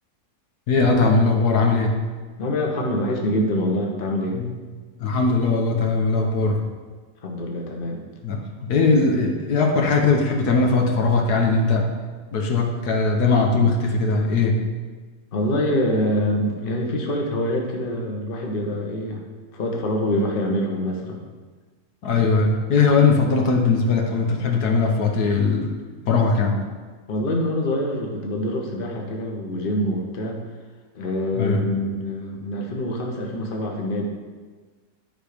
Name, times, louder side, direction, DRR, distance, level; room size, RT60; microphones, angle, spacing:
voice 1, 0.7-1.9 4.3-4.5 5.0-6.6 8.2-11.9 12.3-14.6 22.0-25.7 26.1-26.6 31.3-31.6, left 4 dB, 75° left, 1 dB, 1.6 m, -20 dB
voice 2, 2.4-4.4 7.2-8.1 15.3-19.2 19.5-21.2 27.1-30.4 30.9-34.1, left 1 dB, 35° left, 0 dB, 1.2 m, -25 dB
11.0 x 5.0 x 5.1 m, 1.4 s
omnidirectional pair, 1.7 m